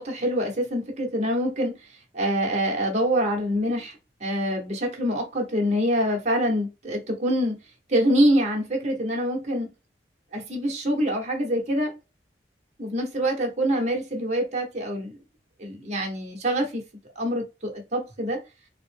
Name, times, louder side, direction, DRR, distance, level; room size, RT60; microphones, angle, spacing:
voice 1, 0.0-1.9 2.1-7.6 7.9-9.7 10.3-11.9 12.8-15.2 15.6-16.8 17.2-18.4, equal, 40° right, 1.0 m, -25 dB
3.8 x 2.1 x 3.4 m
head